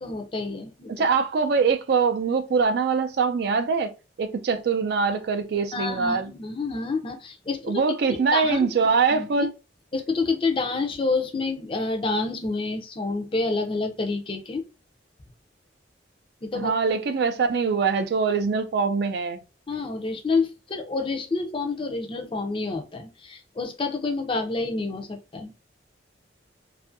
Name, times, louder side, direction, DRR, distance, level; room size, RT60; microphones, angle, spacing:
voice 1, 0.0-0.9 5.7-7.8 8.1-8.7 9.1-9.5 9.9-14.6 16.4-16.7 19.7-25.5, left 3 dB, 30° left, 0.4 m, -28 dB
voice 2, 0.9-3.9 4.2-6.3 7.6-9.5 16.5-19.4, right 5 dB, 60° right, 0.4 m, -23 dB
2.5 x 2.4 x 2.5 m
head